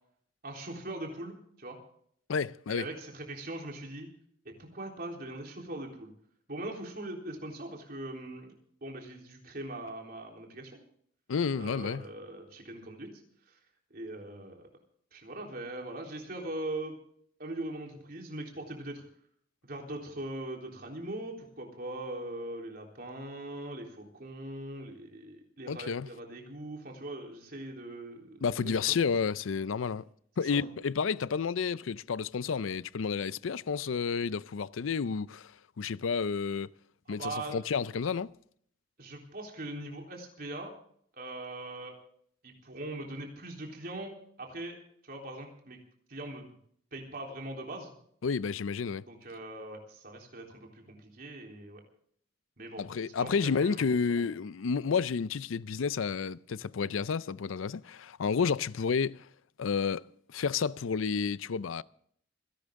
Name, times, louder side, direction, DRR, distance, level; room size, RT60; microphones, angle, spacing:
voice 1, 0.4-1.8 2.7-4.1 4.5-6.1 6.5-8.5 8.8-10.8 11.6-13.1 13.5-13.6 13.9-14.7 15.1-16.9 17.4-19.0 19.6-29.0 30.4-30.7 37.1-37.6 39.0-40.7 41.2-41.9 42.4-44.8 45.0-45.8 46.1-46.5 46.9-47.9 49.1-51.8 52.6-54.3, right 1 dB, 50° right, 3.6 m, -41 dB
voice 2, 2.3-2.9 11.3-12.0 25.7-26.1 28.4-30.0 30.4-35.5 35.8-36.7 37.1-38.3 48.2-49.0 52.8-59.3 59.6-60.0 60.3-61.8, left 5 dB, 90° left, 0.5 m, -30 dB
26.5 x 11.5 x 3.7 m
head